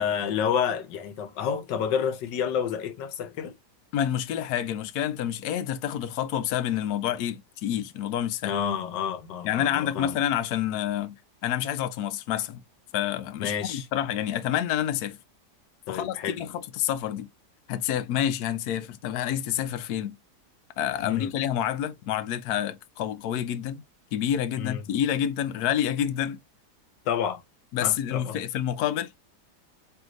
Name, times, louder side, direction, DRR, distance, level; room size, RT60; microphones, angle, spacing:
voice 1, 0.0-3.5 8.4-10.2 13.4-13.9 15.9-16.4 21.0-21.3 24.6-24.8 27.1-27.4 27.8-28.4, left 8 dB, 90° left, 1.4 m, -29 dB
voice 2, 3.9-8.5 9.4-11.2 11.4-12.6 12.9-15.2 15.9-17.3 17.7-20.2 20.8-23.8 24.1-26.4 27.7-29.1, left 10 dB, 70° left, 1.1 m, -28 dB
3.8 x 3.4 x 3.0 m
omnidirectional pair, 1.8 m